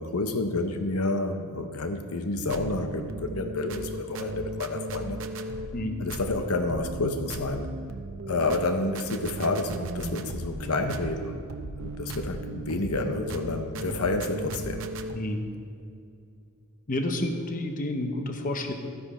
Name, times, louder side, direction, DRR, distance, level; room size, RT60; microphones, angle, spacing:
voice 1, 0.0-5.2 6.0-7.7 8.3-11.4 11.8-14.9, left 2 dB, 80° left, 7 dB, 0.8 m, -29 dB
sound 1, 2.3-15.2, right 2 dB, 65° right, 0.7 m, -36 dB
voice 2, 16.9-18.7, left 1 dB, 35° left, 5 dB, 0.9 m, -30 dB
13.0 x 10.0 x 4.3 m, 2.5 s
head